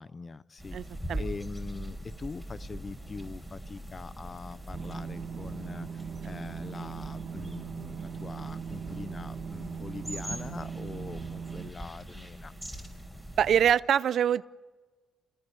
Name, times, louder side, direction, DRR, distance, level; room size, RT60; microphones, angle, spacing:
voice 1, 0.0-0.8 1.2-12.5, left 4 dB, 35° left, 18 dB, 0.7 m, -42 dB
sound 1, 0.6-13.7, right 1 dB, 5° left, 4.5 m, -42 dB
voice 2, 0.7-1.2 13.4-14.4, right 9 dB, 65° right, 18 dB, 0.6 m, -24 dB
sound 2, 4.7-11.7, right 7 dB, 45° right, 1.7 m, -39 dB
27.0 x 18.5 x 7.0 m, 1.3 s
cardioid pair, 90°, 0 cm